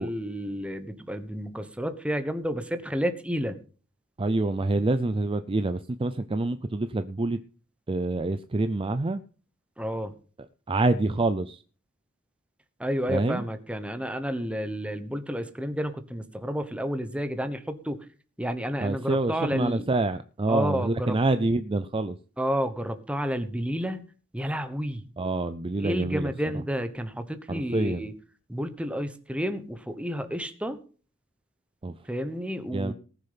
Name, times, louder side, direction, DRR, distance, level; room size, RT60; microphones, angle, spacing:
voice 1, 0.0-3.6 9.8-10.1 12.8-18.0 18.4-19.9 20.5-21.2 22.4-25.1 25.8-28.1 28.5-30.8 32.1-32.9, equal, 5° right, 9 dB, 1.1 m, -31 dB
voice 2, 4.2-7.4 7.9-9.2 10.7-11.6 13.1-13.4 18.8-22.2 25.2-26.3 27.5-28.1 31.8-31.9 32.7-32.9, right 2 dB, 25° right, 11 dB, 0.5 m, -26 dB
19.0 x 6.6 x 5.7 m, 0.40 s
head